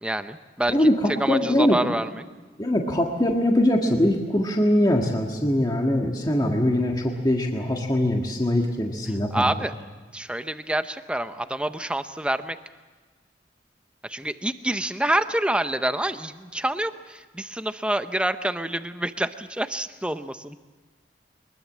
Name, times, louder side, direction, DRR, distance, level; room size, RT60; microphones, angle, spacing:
voice 1, 0.0-0.9 1.2-2.1 9.3-9.7 10.1-12.6 14.0-20.6, right 1 dB, 5° right, 10 dB, 0.8 m, -27 dB
voice 2, 0.7-1.8 2.6-9.5, left 1 dB, 25° left, 1 dB, 1.7 m, -22 dB
23.0 x 21.5 x 7.4 m, 1.3 s
head